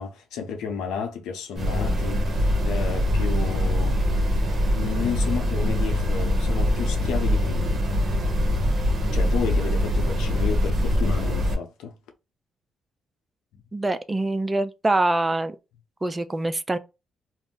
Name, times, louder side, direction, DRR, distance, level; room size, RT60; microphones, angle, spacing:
voice 1, 0.0-4.0 4.3-7.8 9.1-11.9 13.5-13.6, left 6 dB, 85° left, 0.7 m, -32 dB
sound 1, 1.5-11.5, left 1 dB, 40° right, 0.8 m, -23 dB
voice 2, 13.7-15.6 16.0-16.8, right 2 dB, 20° right, 0.4 m, -24 dB
2.5 x 2.0 x 3.6 m
cardioid pair, 90°, 0 cm